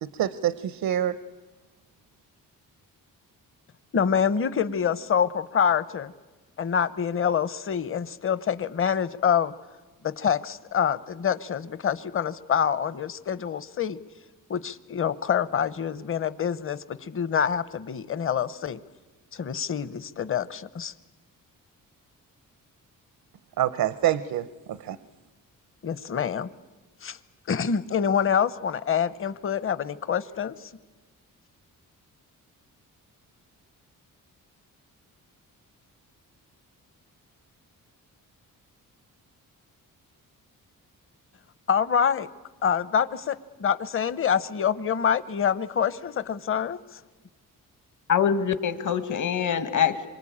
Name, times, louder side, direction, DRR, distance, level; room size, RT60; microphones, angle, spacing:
voice 1, 0.0-1.2 23.6-25.0, right 11 dB, 80° right, 15 dB, 0.9 m, -26 dB
voice 2, 3.9-6.1 6.6-9.5 10.0-14.0 14.5-18.8 19.3-20.9 25.8-26.5 27.0-27.2 27.5-30.5 41.7-42.3 42.6-43.3 43.6-46.8, left 7 dB, 40° left, 16 dB, 0.9 m, -26 dB
voice 3, 48.1-50.0, left 8 dB, 60° left, 11 dB, 1.8 m, -24 dB
27.5 x 24.5 x 8.7 m, 1.2 s
cardioid pair, 115°, 34 cm